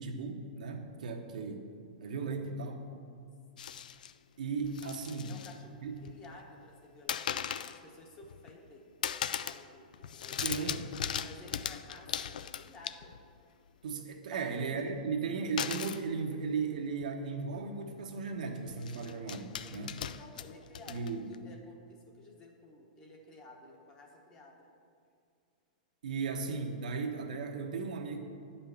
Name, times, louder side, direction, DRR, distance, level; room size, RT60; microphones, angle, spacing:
voice 1, 0.0-1.7 2.0-2.9 4.4-5.3 5.8-5.9 10.3-10.9 13.8-20.0 20.9-21.3 26.0-28.2, right 4 dB, 70° right, 3 dB, 1.1 m, -36 dB
sound 1, 3.6-4.1 4.6-5.6 5.9-6.4 7.1-7.8 8.2-8.7 9.0-9.7 9.9-13.3 15.6-16.0 17.0-17.1 17.4-17.6 18.7-21.4, left 9 dB, 75° left, 0.4 m, -38 dB
voice 2, 5.3-10.7 11.2-13.1 14.3-14.9 19.6-24.7, left 2 dB, 15° left, 1 dB, 1.0 m, -54 dB
9.7 x 5.6 x 7.1 m, 2.3 s
supercardioid pair, 180°, 4 cm